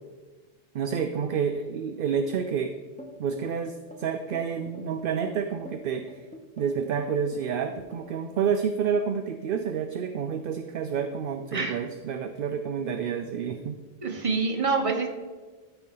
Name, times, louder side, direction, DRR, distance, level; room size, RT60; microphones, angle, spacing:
voice 1, 0.7-2.7 3.2-6.2 6.6-13.8, right 7 dB, 65° right, 7 dB, 0.7 m, -29 dB
sound 1, 3.0-8.2, left 1 dB, 10° left, 0.8 m, -45 dB
voice 2, 14.0-15.1, right 4 dB, 35° right, 1 dB, 1.2 m, -26 dB
13.5 x 4.5 x 3.8 m, 1.4 s
omnidirectional pair, 1.0 m